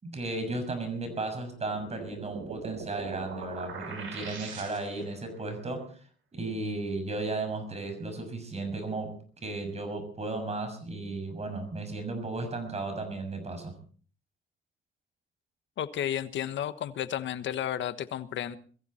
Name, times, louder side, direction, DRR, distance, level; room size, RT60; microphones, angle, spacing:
voice 1, 0.0-5.9 6.3-13.7, right 2 dB, 35° right, 6.5 m, -35 dB
sound 1, 1.6-5.2, right 5 dB, 75° right, 7.1 m, -41 dB
voice 2, 15.8-18.6, left 10 dB, 70° left, 1.3 m, -32 dB
22.0 x 15.0 x 4.4 m
cardioid pair, 90°, 20 cm